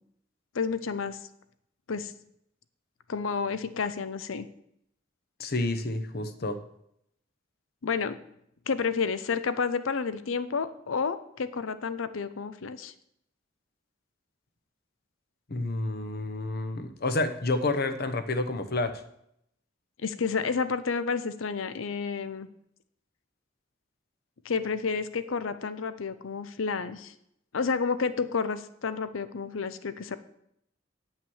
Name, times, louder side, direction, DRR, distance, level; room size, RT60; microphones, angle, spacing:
voice 1, 0.5-1.2 1.9-2.1 3.1-4.5 7.8-8.2 8.7-12.9 20.0-22.5 24.4-27.1 27.5-30.2, left 5 dB, 85° left, 13 dB, 0.6 m, -30 dB
voice 2, 5.4-6.6 15.5-18.9, left 2 dB, 50° left, 9 dB, 0.9 m, -29 dB
9.4 x 5.8 x 7.1 m, 0.74 s
head